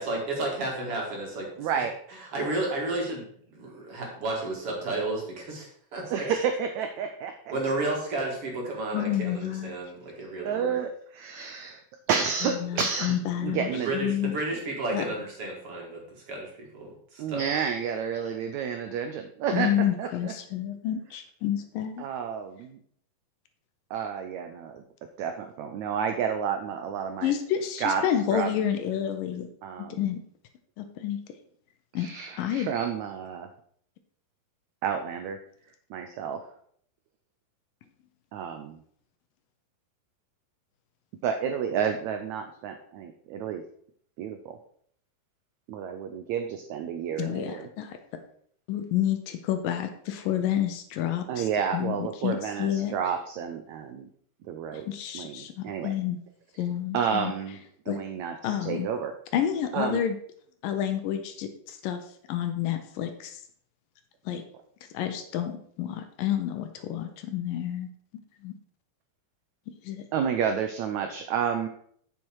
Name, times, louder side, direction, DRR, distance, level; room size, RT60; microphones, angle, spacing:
voice 1, 0.0-6.4 7.5-10.8 13.8-16.0 16.3-17.4, right 2 dB, 45° right, -1 dB, 2.4 m, -32 dB
voice 2, 1.6-1.9 6.1-7.3 10.4-11.8 12.1-13.2 13.4-13.9 17.2-19.7 20.0-20.3 22.0-22.8 23.9-24.8 25.2-27.3 27.8-28.0 28.3-28.5 29.6-30.0 32.0-33.5 34.8-35.4 35.9-36.4 38.3-38.8 41.2-43.6 44.2-44.6 45.7-47.7 51.3-54.1 54.4-54.9 55.1-55.9 56.9-57.6 57.9-59.1 59.7-60.0 70.1-71.7, right 7 dB, 85° right, 6 dB, 1.6 m, -30 dB
voice 3, 8.9-9.8 12.4-14.4 14.9-15.0 19.5-22.1 27.2-29.5 29.9-30.2 30.8-31.2 31.9-32.1 32.4-32.7 47.2-48.0 48.7-53.0 54.7-56.2 56.6-57.3 57.9-58.0 58.4-58.9 59.3-60.2 60.6-62.0 62.3-63.4 64.3-64.4 64.9-67.9 68.4-68.6 69.8-70.0, left 10 dB, 75° left, 7 dB, 2.4 m, -29 dB
7.8 x 7.3 x 4.7 m, 0.62 s
omnidirectional pair, 4.2 m